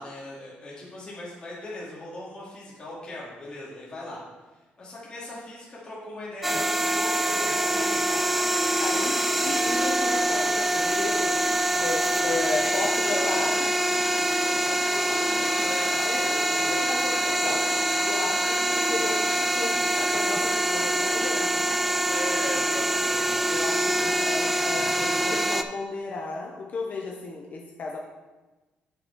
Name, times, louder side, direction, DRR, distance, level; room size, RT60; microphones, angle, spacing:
voice 1, 0.0-4.2 4.5-8.0 12.0-12.7 13.0-13.7 14.4-16.8 17.1-17.5 22.1-24.0 24.7-25.4, left 2 dB, 25° left, -7 dB, 2.2 m, -39 dB
sound 1, 6.4-25.6, right 1 dB, 5° right, 0.4 m, -25 dB
voice 2, 8.8-9.2 9.4-11.4 11.8-13.7 16.0-17.7 18.0-21.7 23.5-28.0, left 3 dB, 50° left, 0 dB, 0.8 m, -34 dB
8.6 x 4.3 x 4.5 m, 1.2 s
cardioid pair, 120°, 3 cm